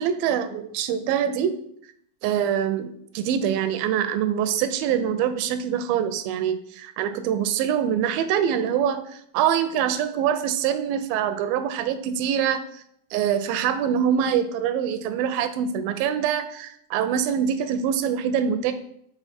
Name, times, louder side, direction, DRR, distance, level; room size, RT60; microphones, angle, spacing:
voice 1, 0.0-1.5 2.2-12.8 13.1-18.7, right 8 dB, 85° right, 10 dB, 2.3 m, -24 dB
6.9 x 4.0 x 4.1 m, 0.70 s
omnidirectional pair, 4.2 m